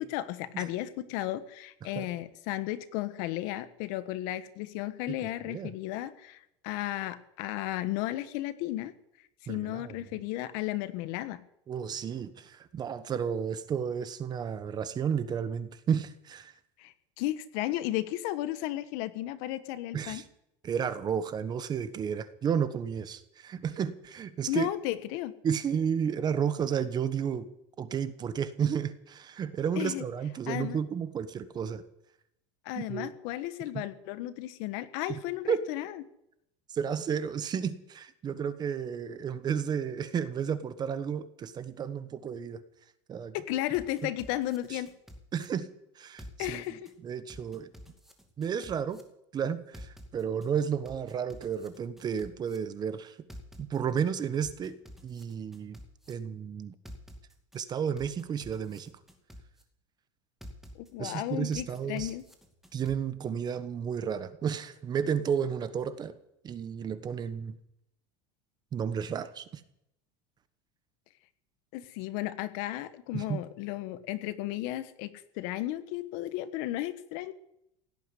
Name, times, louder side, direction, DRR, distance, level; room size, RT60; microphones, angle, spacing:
voice 1, 0.0-8.9 9.4-11.4 16.8-20.2 24.5-25.3 29.8-30.0 30.5-30.8 32.6-36.0 43.3-44.9 46.4-46.9 60.7-62.2 71.7-77.3, left 15 dB, 60° left, 13 dB, 1.3 m, -34 dB
voice 2, 9.5-9.9 11.7-16.5 19.9-20.2 20.6-24.7 25.4-27.5 27.8-31.8 32.7-33.1 33.7-33.8 35.1-35.2 35.5-35.6 36.7-42.6 43.1-43.3 44.0-44.1 44.7-44.8 45.3-45.7 46.0-46.6 47.0-47.7 48.4-49.0 49.3-53.1 53.6-54.8 55.0-55.8 56.1-56.7 57.5-58.9 61.0-62.1 62.7-66.1 66.4-67.6 68.7-69.6 73.1-73.4, right 7 dB, 25° right, 13 dB, 1.1 m, -32 dB
sound 1, 43.7-45.5 46.2-46.9 47.3-49.0 49.7-50.5 50.8-52.6 53.3-54.0 54.4-56.1 56.8-57.6 58.0-59.6 60.4-61.1 61.5-63.0, equal, ahead, 2.3 m, -49 dB
17.5 x 8.5 x 9.9 m, 0.79 s
supercardioid pair, 145°, 16 cm